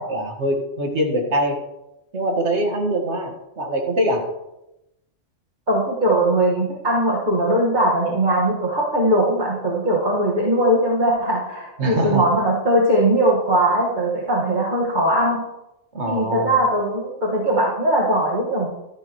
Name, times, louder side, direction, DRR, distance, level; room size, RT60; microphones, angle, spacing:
voice 1, 0.0-1.5 2.1-4.2 11.8-12.2 15.9-16.6, right 1 dB, 65° right, 2 dB, 1.9 m, -23 dB
voice 2, 5.7-15.4 16.1-18.7, right 1 dB, 40° right, -4 dB, 1.8 m, -20 dB
13.0 x 10.5 x 3.1 m, 0.91 s
omnidirectional pair, 1.3 m